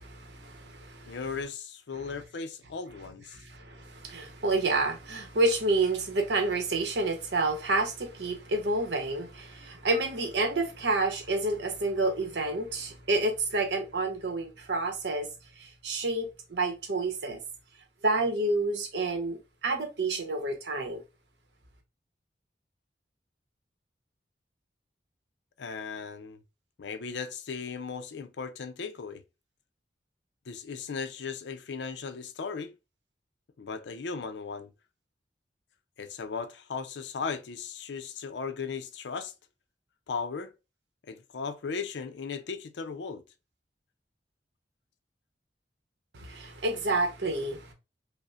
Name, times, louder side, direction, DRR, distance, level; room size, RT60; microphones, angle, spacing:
voice 1, 0.0-1.2 3.3-15.3 15.6-17.4 18.0-21.0 46.1-47.7, right 2 dB, 75° right, 0.8 m, -29 dB
voice 2, 1.1-3.4 25.6-26.4 26.8-29.2 30.5-32.7 33.6-34.7 36.0-39.3 40.1-40.5 41.1-43.2, left 5 dB, 75° left, 0.5 m, -37 dB
5.2 x 2.1 x 2.3 m
head